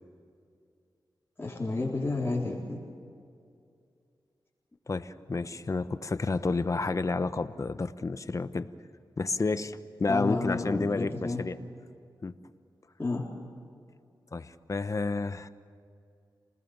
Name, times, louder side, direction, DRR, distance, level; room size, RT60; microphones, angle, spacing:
voice 1, 1.4-2.8 10.1-11.4 13.0-13.2, left 2 dB, 25° left, -6 dB, 4.1 m, -31 dB
voice 2, 4.9-8.7 9.2-11.6 12.2-12.3 14.3-15.5, left 3 dB, 40° left, 11 dB, 1.0 m, -30 dB
28.5 x 20.0 x 7.2 m, 2.4 s
wide cardioid pair, 95°, 8 cm